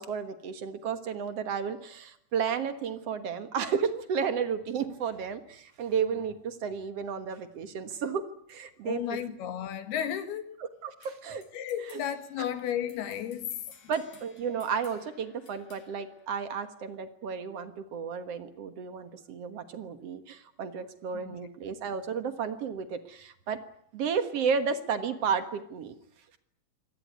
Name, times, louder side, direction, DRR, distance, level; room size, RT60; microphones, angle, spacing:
voice 1, 0.0-8.2 8.5-9.2 10.6-11.4 11.9-12.0 13.9-23.6 23.9-25.9, right 6 dB, 55° right, 1.8 m, -32 dB
voice 2, 8.8-10.6 11.5-13.6 21.3-21.4, left 9 dB, 80° left, 3.7 m, -33 dB
sound 1, 11.0-17.0, left 6 dB, 60° left, 5.1 m, -59 dB
25.0 x 18.5 x 9.6 m
omnidirectional pair, 4.5 m